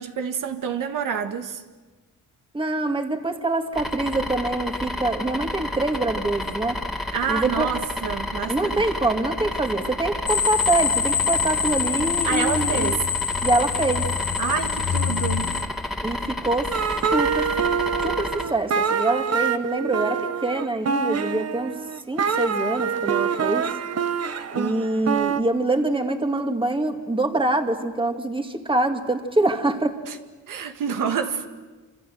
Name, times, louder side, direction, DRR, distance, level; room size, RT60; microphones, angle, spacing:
voice 1, 0.0-1.6 7.1-8.8 12.2-13.0 14.4-15.5 30.1-30.2 30.5-31.5, right 7 dB, 80° right, 6 dB, 1.8 m, -27 dB
voice 2, 2.5-6.8 7.3-7.7 8.5-13.0 13.4-14.1 16.0-16.7 17.1-17.5 18.0-21.7 22.1-23.7 24.5-30.0, right 2 dB, 15° right, 5 dB, 2.3 m, -25 dB
sound 1, 3.7-18.4, left 1 dB, ahead, 2.4 m, -30 dB
sound 2, 10.3-15.6, left 7 dB, 50° left, 1.8 m, -25 dB
sound 3, 16.7-25.4, right 7 dB, 50° right, 1.3 m, -25 dB
27.0 x 27.0 x 7.9 m, 1.3 s
cardioid pair, 105°, 32 cm